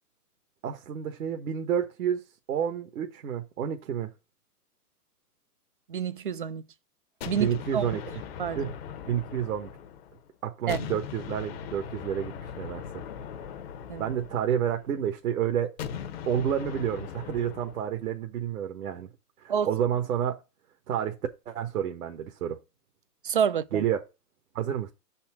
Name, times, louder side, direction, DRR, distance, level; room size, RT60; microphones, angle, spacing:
voice 1, 0.6-2.2 2.5-4.1 7.4-8.0 8.5-8.7 9.1-9.7 10.4-12.8 14.0-15.7 16.3-19.1 19.4-20.4 20.9-21.1 21.5-22.6 23.7-24.0 24.5-24.9, right 9 dB, 60° right, 1.3 m, -29 dB
voice 2, 5.9-6.6 7.3-7.9 8.4-8.7 10.7-10.8 13.9-14.1 19.5-19.7 23.2-23.8, right 8 dB, 35° right, 0.4 m, -28 dB
sound 1, 7.2-10.2 10.7-14.9 15.8-17.9, left 7 dB, 40° left, 0.9 m, -39 dB
6.5 x 4.3 x 5.9 m
hypercardioid pair, 155°, 47 cm